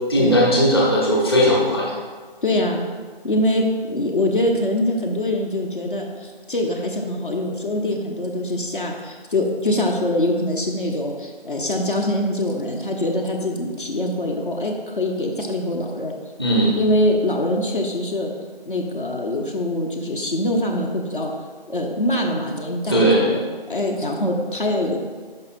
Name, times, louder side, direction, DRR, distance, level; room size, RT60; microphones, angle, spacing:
voice 1, 0.1-1.9 16.4-16.8 22.9-23.2, equal, 25° left, -5 dB, 0.9 m, -17 dB
voice 2, 2.4-2.8 3.2-16.1 16.8-18.3 18.7-21.3 21.7-23.4 23.7-25.0, left 1 dB, 60° left, 0 dB, 0.9 m, -23 dB
5.4 x 5.4 x 4.2 m, 1.5 s
figure-of-eight pair, 165°, 30 cm